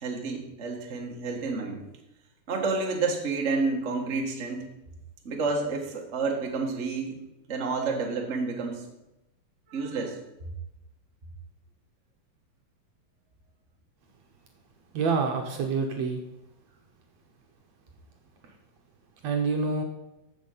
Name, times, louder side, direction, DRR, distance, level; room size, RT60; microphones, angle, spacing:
voice 1, 0.0-1.8 2.5-4.7 5.2-7.2 7.5-8.9 9.7-10.2, right 4 dB, 35° right, 1 dB, 1.1 m, -29 dB
voice 2, 14.9-16.2 18.4-18.6 19.2-19.8, right 4 dB, 65° right, 3 dB, 2.0 m, -27 dB
14.5 x 6.5 x 5.6 m, 0.94 s
omnidirectional pair, 3.9 m